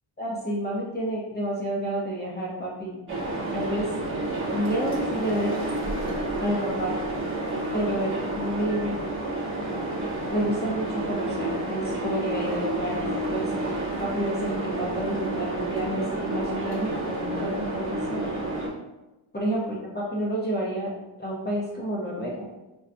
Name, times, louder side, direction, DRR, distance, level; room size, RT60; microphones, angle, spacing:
voice 1, 0.2-3.0 3.5-3.9 4.5-5.5 6.4-7.0 7.7-9.0 10.3-18.4 19.3-20.9 21.2-22.3, right 1 dB, 20° left, -6 dB, 0.5 m, -30 dB
sound 1, 3.1-18.7, right 1 dB, 25° right, 0.8 m, -30 dB
4.0 x 2.2 x 2.5 m, 1.0 s
wide cardioid pair, 180°, 48 cm